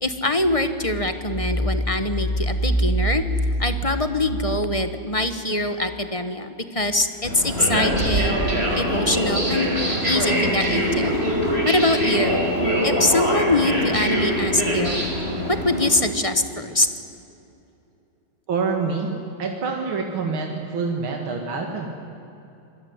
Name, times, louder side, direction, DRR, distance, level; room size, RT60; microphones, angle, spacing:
voice 1, 0.0-8.4 8.7-9.7 10.0-11.1 11.6-12.4 12.8-15.0 15.5-16.9, left 1 dB, 20° left, 9 dB, 1.0 m, -23 dB
sound 1, 7.2-15.9, equal, 30° right, 5.5 m, -23 dB
voice 2, 18.5-19.1 19.4-21.9, right 4 dB, 75° right, 2 dB, 2.9 m, -26 dB
26.5 x 21.0 x 9.7 m, 2.8 s
omnidirectional pair, 2.3 m